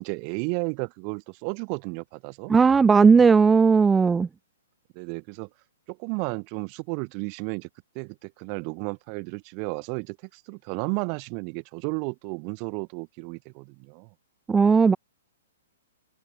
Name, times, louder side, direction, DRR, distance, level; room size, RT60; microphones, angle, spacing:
voice 1, 0.0-2.5 4.9-5.5 5.9-7.7 7.9-14.1, right 40 dB or more, 35° right, 3.8 m, -33 dB
voice 2, 2.5-4.3 14.5-15.0, right 5 dB, 10° right, 0.3 m, -17 dB
figure-of-eight pair, 115°, 0 cm